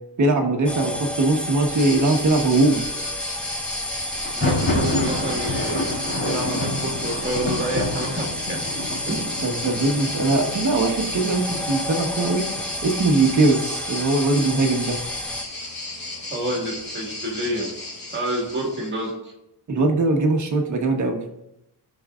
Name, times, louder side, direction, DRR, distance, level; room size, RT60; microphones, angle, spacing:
voice 1, 0.2-2.8 9.1-15.0 19.7-21.2, right 2 dB, 45° right, 2 dB, 1.3 m, -21 dB
sound 1, 0.6-15.4, left 1 dB, 5° left, 0.5 m, -31 dB
sound 2, 1.7-19.1, left 2 dB, 55° left, 3.1 m, -34 dB
Thunder, 4.1-11.9, left 1 dB, 35° left, 2.4 m, -28 dB
voice 2, 4.3-5.9 6.2-8.6 9.1-9.3 16.3-17.7 18.1-19.3, right 1 dB, 25° right, -1 dB, 1.8 m, -28 dB
17.0 x 6.2 x 2.5 m, 0.87 s
wide cardioid pair, 150°, 40 cm